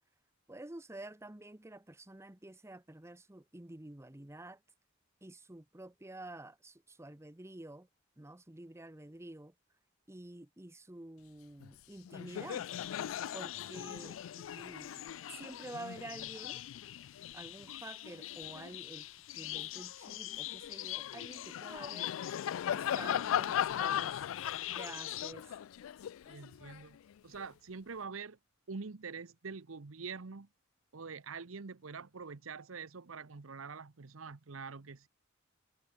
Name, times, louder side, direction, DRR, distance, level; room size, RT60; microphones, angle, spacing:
voice 1, 0.5-4.6 5.2-7.9 8.2-9.5 10.1-12.7 13.3-16.6 17.3-19.1 19.3-22.1 22.7-24.2 24.8-25.5, right 2 dB, 15° right, 0.9 m, -49 dB
Laughter, 11.6-11.8 12.1-18.8 19.3-27.5, left 10 dB, 90° left, 0.3 m, -39 dB
sound 1, 12.3-25.3, left 15 dB, 70° left, 0.8 m, -45 dB
voice 2, 26.2-27.0 27.2-28.4 28.7-30.5 30.9-35.1, right 5 dB, 85° right, 0.9 m, -45 dB
head